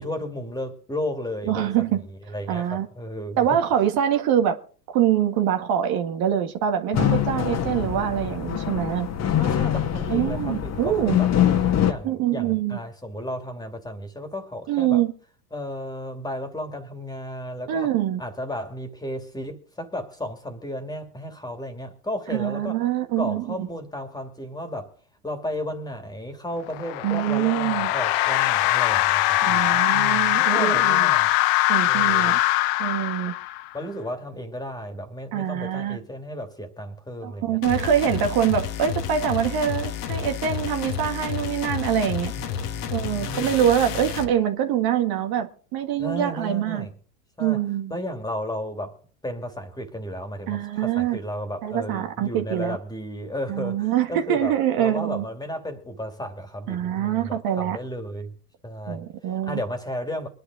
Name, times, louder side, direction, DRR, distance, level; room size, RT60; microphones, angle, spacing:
voice 1, 0.0-3.5 9.4-11.3 11.9-15.0 15.5-17.9 18.2-22.8 23.2-25.0 25.2-31.3 31.8-32.4 33.7-37.6 42.4-43.5 46.0-46.9 47.4-47.6 47.9-58.4 58.6-60.3, left 1 dB, 10° left, 2.7 m, -34 dB
voice 2, 1.5-2.0 2.5-2.9 3.4-4.6 4.9-9.1 10.1-11.2 12.0-12.8 14.7-15.1 17.7-18.2 22.3-23.7 27.0-27.9 29.4-31.1 31.7-32.4 32.8-33.3 35.3-36.0 37.2-42.3 42.9-46.9 47.4-48.0 50.5-51.2 51.6-52.8 53.5-55.3 56.7-57.8 58.9-59.6, right 10 dB, 50° right, 1.8 m, -24 dB
sound 1, 6.9-11.9, left 10 dB, 35° left, 1.9 m, -24 dB
sound 2, 26.7-33.7, left 17 dB, 50° left, 0.9 m, -22 dB
sound 3, 37.6-44.3, left 8 dB, 75° left, 1.9 m, -31 dB
23.5 x 10.5 x 3.9 m
hypercardioid pair, 95°, 47 cm